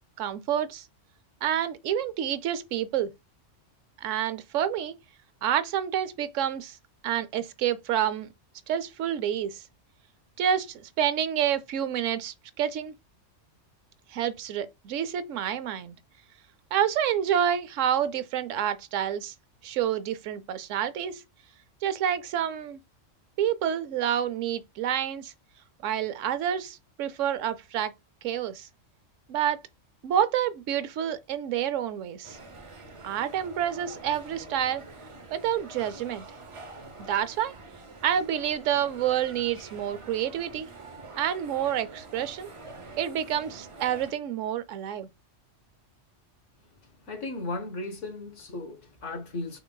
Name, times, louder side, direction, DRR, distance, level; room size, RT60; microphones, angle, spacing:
voice 1, 0.2-0.9 1.4-3.1 4.0-5.0 5.4-6.8 7.0-8.3 8.7-9.6 10.4-12.9 14.1-16.0 16.7-19.3 19.6-21.2 21.8-22.8 23.4-25.3 25.8-27.9 28.2-28.7 29.3-29.6 30.0-32.4 33.0-34.8 35.3-36.2 37.1-37.5 38.0-40.7 41.2-42.5 43.0-45.1, right 10 dB, 85° right, 1.0 m, -28 dB
sound 1, 32.2-44.1, right 3 dB, 30° right, 0.7 m, -46 dB
voice 2, 47.1-49.6, left 2 dB, 75° left, 1.5 m, -36 dB
5.9 x 3.8 x 2.3 m
omnidirectional pair, 1.3 m